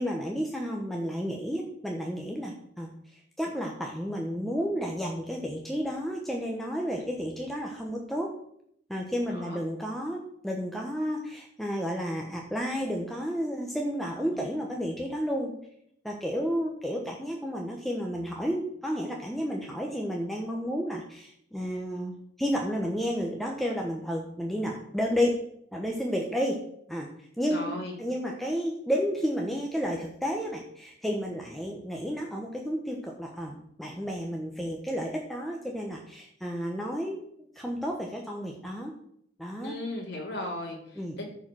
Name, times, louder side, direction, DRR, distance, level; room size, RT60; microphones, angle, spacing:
voice 1, 0.0-2.9 3.4-8.3 8.9-10.2 10.4-15.5 16.0-25.4 25.7-26.6 26.9-27.1 27.4-37.3 37.5-38.9 39.4-39.7 41.0-41.2, equal, ahead, -1 dB, 1.1 m, -31 dB
voice 2, 9.3-9.6 14.3-14.5 27.5-28.0 39.6-41.3, left 1 dB, 75° left, -2 dB, 2.6 m, -37 dB
13.5 x 4.8 x 6.3 m, 0.71 s
head